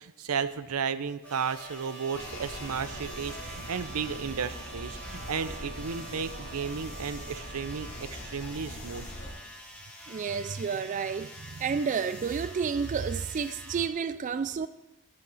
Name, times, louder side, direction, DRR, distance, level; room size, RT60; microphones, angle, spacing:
voice 1, 0.0-9.1, right 6 dB, 85° right, 0.6 m, -34 dB
sound 1, 1.2-13.9, left 1 dB, 5° left, 1.8 m, -47 dB
Trumpet, 1.2-8.1, right 7 dB, 70° right, 2.2 m, -48 dB
sound 2, 2.1-9.3, left 1 dB, 65° left, 3.5 m, -42 dB
voice 2, 10.1-14.7, right 6 dB, 35° right, 0.3 m, -30 dB
13.5 x 10.0 x 4.0 m
head